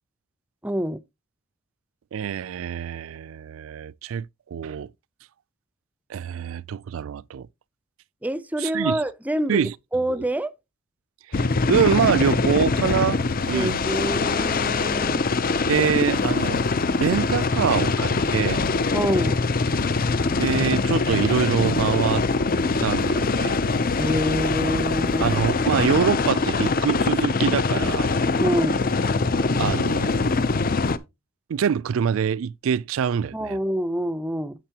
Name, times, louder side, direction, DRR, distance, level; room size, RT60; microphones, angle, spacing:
voice 1, 0.6-1.0 8.2-10.5 13.5-15.3 18.9-19.4 24.0-25.4 28.4-28.9 33.3-34.5, equal, 5° right, 0.5 m, -26 dB
voice 2, 2.1-4.3 4.5-4.9 6.1-7.5 8.6-9.0 9.5-9.7 10.1-10.2 11.3-13.2 13.4-13.8 15.7-16.6 17.0-18.6 20.3-22.3 22.8-23.6 25.2-28.1 29.6-30.4 31.5-33.6, right 7 dB, 70° right, 0.4 m, -25 dB
sound 1, 11.3-31.0, left 3 dB, 45° left, 0.6 m, -23 dB
9.0 x 7.4 x 2.8 m
head